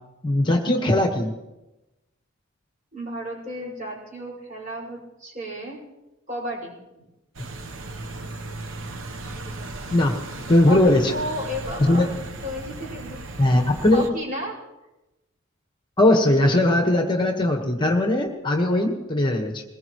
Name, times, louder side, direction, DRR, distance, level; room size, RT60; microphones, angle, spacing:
voice 1, 0.2-1.3 7.4-7.5 9.9-10.2 10.5-11.1 11.8-12.1 13.4-14.1 16.0-19.6, left 1 dB, 20° left, 2 dB, 1.3 m, -19 dB
voice 2, 2.9-5.8 6.3-7.1 10.7-12.2 12.4-13.2 13.5-14.6 18.7-19.0, equal, 40° right, -2 dB, 5.7 m, -33 dB
sound 1, 7.3-14.1, right 2 dB, 65° right, 1.0 m, -36 dB
22.0 x 20.0 x 3.1 m, 1.0 s
head